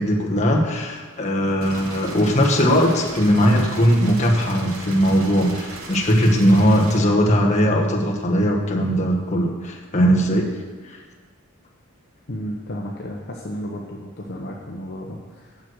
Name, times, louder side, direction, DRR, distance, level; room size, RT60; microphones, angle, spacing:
voice 1, 0.0-10.5 10.8-11.0, equal, 35° left, -1 dB, 1.3 m, -19 dB
sound 1, 1.6-7.0, right 2 dB, 80° right, 1.3 m, -36 dB
voice 2, 12.3-15.6, equal, 50° left, -1 dB, 0.9 m, -33 dB
7.5 x 6.4 x 7.7 m, 1.5 s
head